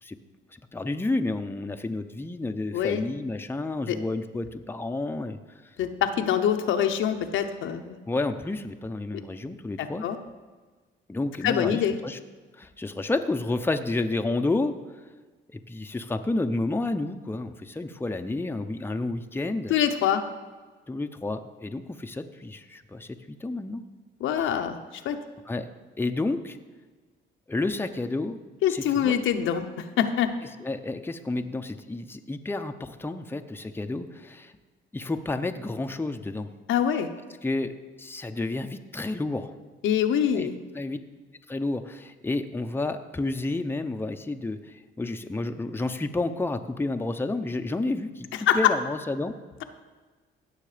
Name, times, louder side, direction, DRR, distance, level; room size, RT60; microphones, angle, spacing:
voice 1, 0.7-5.4 8.1-10.0 11.1-12.2 12.6-14.7 15.7-19.7 20.9-23.8 25.5-25.7 26.0-26.6 27.5-28.4 28.7-29.2 30.6-34.5 34.9-36.5 37.4-37.7 38.0-39.5 40.3-40.5 40.7-41.0 41.5-48.3 48.5-49.3, left 2 dB, 10° left, 6 dB, 0.7 m, -30 dB
voice 2, 2.7-3.0 3.9-4.0 5.8-8.0 9.8-10.2 11.4-12.0 19.7-20.2 24.2-25.2 28.6-29.6 30.0-30.3 36.7-37.1 39.8-40.5 48.5-48.7, left 9 dB, 80° left, 6 dB, 0.9 m, -24 dB
16.5 x 6.6 x 5.1 m, 1.3 s
cardioid pair, 90°, 20 cm